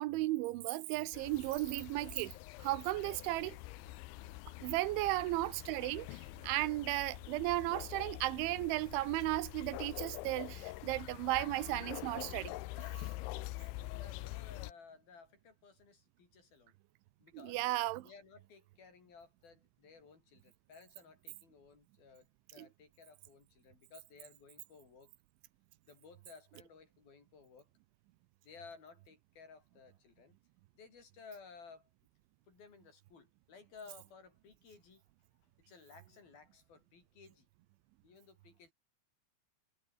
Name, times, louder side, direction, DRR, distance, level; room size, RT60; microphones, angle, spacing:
voice 1, 0.0-2.3 2.6-3.6 4.6-6.1 6.4-12.5 17.4-18.1, right 18 dB, 90° right, 3.4 m, -35 dB
sound 1, 1.1-14.7, left 20 dB, 90° left, 3.1 m, -45 dB
voice 2, 4.9-5.2 13.3-13.5 13.9-16.7 17.2-17.6 18.0-22.3 22.5-25.1 25.9-27.7 28.4-30.4 30.8-31.9 32.5-35.0 35.7-37.5 38.0-38.7, left 5 dB, 55° left, 7.0 m, -57 dB
omnidirectional pair, 5.3 m